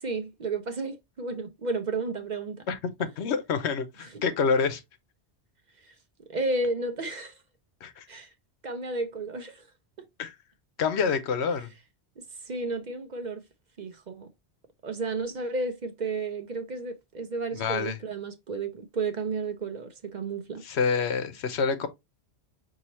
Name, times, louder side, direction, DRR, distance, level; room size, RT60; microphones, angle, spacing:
voice 1, 0.0-2.6 5.8-5.9 6.3-7.4 8.1-8.3 8.6-9.7 10.0-10.1 12.2-13.4 13.8-14.3 14.8-20.6, right 3 dB, 50° right, 0.6 m, -32 dB
voice 2, 2.7-4.8 7.8-8.1 10.2-10.3 10.8-11.7 17.5-18.0 20.6-21.9, left 5 dB, 80° left, 1.0 m, -27 dB
5.5 x 2.8 x 3.0 m
omnidirectional pair, 1.1 m